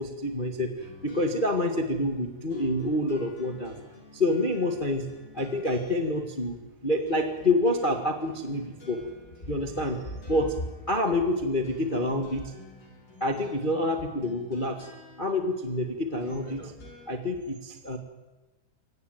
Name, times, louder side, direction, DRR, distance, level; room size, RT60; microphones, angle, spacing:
voice 1, 0.0-3.7 4.1-5.1 5.3-6.6 6.8-9.0 9.4-12.5 13.2-14.9 15.2-16.7 17.1-18.0, left 1 dB, 75° left, 5 dB, 0.4 m, -27 dB
sound 1, 0.8-17.1, left 1 dB, 50° left, 7.4 m, -52 dB
23.5 x 18.5 x 9.2 m, 1.1 s
omnidirectional pair, 4.5 m